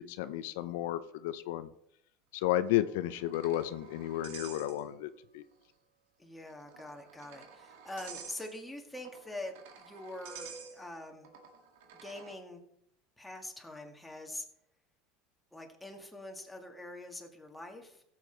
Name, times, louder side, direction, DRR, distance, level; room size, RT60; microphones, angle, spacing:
voice 1, 0.0-1.7 2.3-5.4, left 13 dB, 80° left, 11 dB, 0.6 m, -33 dB
sound 1, 2.6-5.2 5.5-5.6 6.5-12.4, right 6 dB, 80° right, 2.0 m, -51 dB
voice 2, 6.2-11.3 12.0-12.6 13.2-14.5 15.5-18.0, left 1 dB, 5° left, 2 dB, 1.8 m, -44 dB
15.5 x 7.4 x 4.5 m, 0.75 s
supercardioid pair, 135°, 0 cm